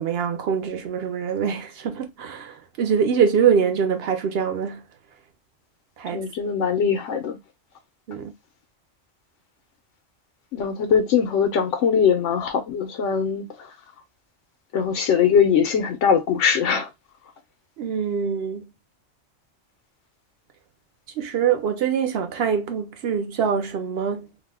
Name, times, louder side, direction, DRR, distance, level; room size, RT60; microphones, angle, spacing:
voice 1, 0.0-4.8 6.0-6.2 8.1-8.3 17.8-18.6 21.2-24.3, right 7 dB, 60° right, 0.8 m, -24 dB
voice 2, 6.1-7.4 10.5-13.5 14.7-16.9, left 7 dB, 90° left, 1.0 m, -21 dB
2.6 x 2.1 x 3.3 m
omnidirectional pair, 1.2 m